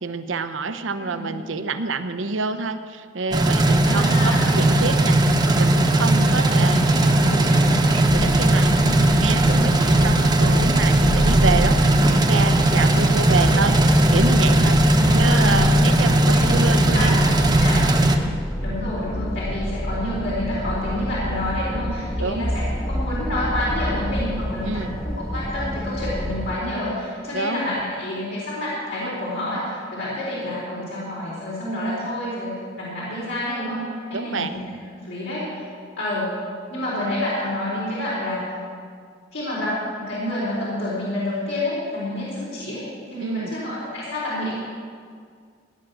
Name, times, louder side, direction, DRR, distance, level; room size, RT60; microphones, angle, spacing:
voice 1, 0.0-7.0 7.4-14.8 15.2-17.2 17.6-17.8 22.2-22.5 24.6-25.0 27.3-27.6 34.1-34.5 43.2-43.5, right 4 dB, 80° right, 9 dB, 0.8 m, -28 dB
voice 2, 1.0-1.3 3.9-4.6 6.5-7.6 8.8-9.0 14.9-15.7 16.2-16.5 16.9-17.1 17.6-17.8 18.6-34.6 35.0-35.5 36.0-36.4 36.7-38.4 39.3-44.5, left 1 dB, 75° left, -8 dB, 4.2 m, -28 dB
sound 1, 3.3-18.2, right 1 dB, 20° right, 0.9 m, -18 dB
sound 2, 8.1-26.6, equal, 5° left, 0.5 m, -28 dB
17.0 x 10.0 x 6.2 m, 2.1 s
head